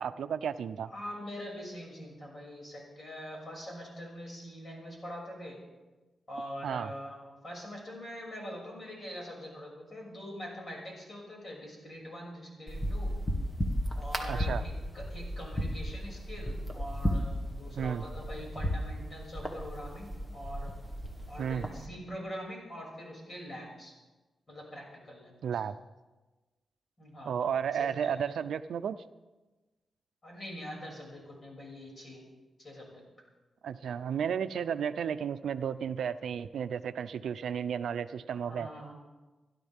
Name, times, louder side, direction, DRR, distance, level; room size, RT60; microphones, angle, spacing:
voice 1, 0.0-0.9 6.6-6.9 14.3-14.6 17.8-18.0 21.4-21.7 25.4-25.7 27.3-29.0 33.6-38.7, right 8 dB, 90° right, 11 dB, 0.6 m, -33 dB
voice 2, 0.9-5.6 6.3-13.1 13.9-20.7 21.3-23.9 24.5-25.3 27.0-28.2 30.2-32.2 32.6-33.0 38.5-38.9, equal, 35° left, -1 dB, 6.5 m, -43 dB
sound 1, 12.7-21.8, equal, 15° left, 1.7 m, -35 dB
30.0 x 12.0 x 3.6 m, 1.2 s
wide cardioid pair, 130°, 0 cm